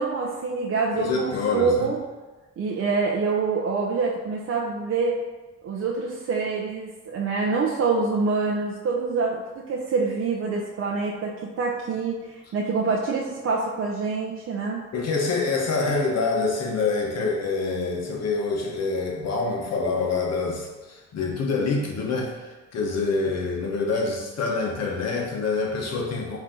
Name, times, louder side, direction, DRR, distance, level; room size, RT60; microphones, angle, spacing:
voice 1, 0.0-2.0 2.6-5.2 5.6-9.4 9.7-12.2 12.5-14.8, right 4 dB, 50° right, -2 dB, 0.6 m, -26 dB
voice 2, 0.9-1.9 14.9-26.4, left 3 dB, 55° left, -1 dB, 1.1 m, -26 dB
4.8 x 2.7 x 3.7 m, 1.2 s
cardioid pair, 90°, 30 cm